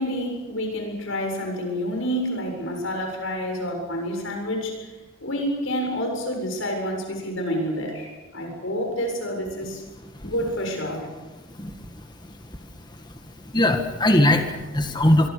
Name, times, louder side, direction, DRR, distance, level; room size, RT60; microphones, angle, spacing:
voice 1, 0.0-4.9 5.2-9.8 10.2-11.1, equal, 65° left, 3 dB, 7.4 m, -28 dB
voice 2, 13.5-15.3, left 1 dB, 20° left, 5 dB, 1.8 m, -20 dB
25.0 x 24.5 x 6.9 m, 1.1 s
head